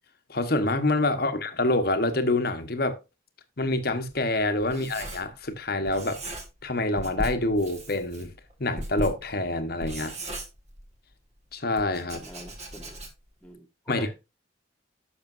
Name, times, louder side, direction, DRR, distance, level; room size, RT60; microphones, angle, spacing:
voice 1, 0.3-3.0 3.6-6.2 6.6-8.3 8.6-10.2 11.5-12.2 13.9-14.1, left 2 dB, 50° left, 1.2 m, -26 dB
Writing, 3.7-5.6 5.8-6.7 7.0-11.1 11.8-13.4, right 1 dB, 35° right, 1.7 m, -38 dB
voice 2, 12.1-13.0 13.4-14.1, equal, 5° left, 1.5 m, -43 dB
11.0 x 6.6 x 2.6 m
head